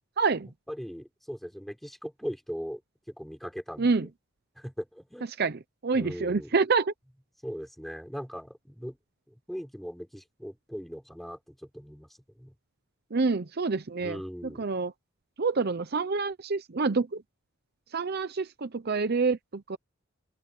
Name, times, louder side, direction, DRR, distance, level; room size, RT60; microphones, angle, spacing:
voice 1, 0.2-0.5 3.8-4.1 5.4-6.9 13.1-14.2 14.6-14.9 15.4-17.1 17.9-19.8, right 4 dB, 50° right, 0.7 m, -27 dB
voice 2, 0.7-2.8 3.1-4.1 4.6-5.3 5.9-6.5 7.4-9.0 9.3-12.1 12.4-12.5 14.0-14.7, equal, ahead, 4.9 m, -39 dB
open air
head